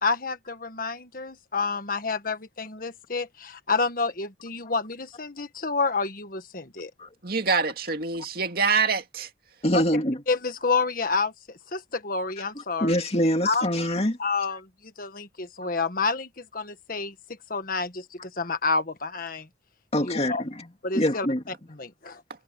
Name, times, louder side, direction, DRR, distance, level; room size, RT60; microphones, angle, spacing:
voice 1, 0.0-6.9 9.7-9.8 10.3-12.9 13.4-13.7 14.2-14.7 15.0-17.1 17.5-19.5 20.0-20.4 20.8-21.3 21.8-22.2, left 4 dB, 50° left, 1.6 m, -29 dB
voice 2, 7.2-9.3, right 5 dB, 55° right, 2.3 m, -25 dB
voice 3, 9.6-10.2 12.6-14.2 19.9-20.7 20.9-21.4, equal, 35° left, 2.2 m, -25 dB
head